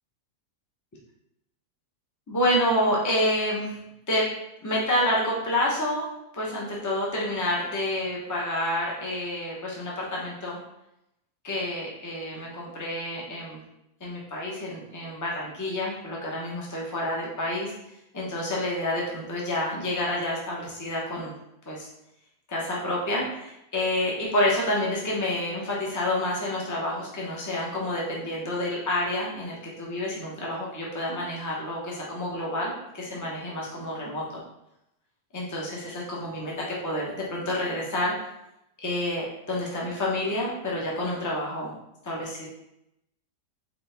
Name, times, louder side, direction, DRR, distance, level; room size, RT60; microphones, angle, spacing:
voice 1, 2.3-3.7 4.1-4.3 4.6-10.6 11.4-13.6 14.0-17.7 18.1-21.3 21.7-21.9 22.5-34.4 35.3-36.5 36.8-38.3 38.8-41.7 42.0-42.5, left 1 dB, 15° left, -4 dB, 0.8 m, -28 dB
4.2 x 3.3 x 3.4 m, 0.85 s
omnidirectional pair, 1.7 m